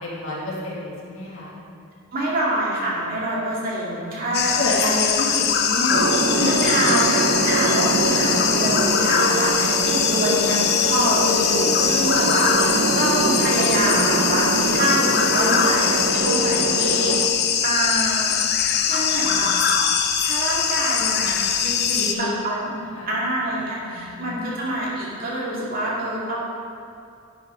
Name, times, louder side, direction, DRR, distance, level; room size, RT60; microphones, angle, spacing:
voice 1, 0.0-1.6 4.2-6.0 6.4-6.5 8.5-8.7 21.9-22.3 22.7-23.1 23.9-24.4, left 1 dB, 65° left, -6 dB, 2.5 m, -29 dB
voice 2, 2.1-5.1 6.4-17.2 17.6-18.3 18.6-19.5 20.2-21.4 21.6-22.6 23.1-26.4, right 1 dB, 40° right, -6 dB, 2.3 m, -26 dB
sound 1, 4.3-22.1, left 7 dB, 45° left, 0.6 m, -22 dB
sound 2, 5.9-17.3, right 2 dB, 60° right, 0.8 m, -24 dB
10.0 x 9.5 x 3.9 m, 2.5 s
head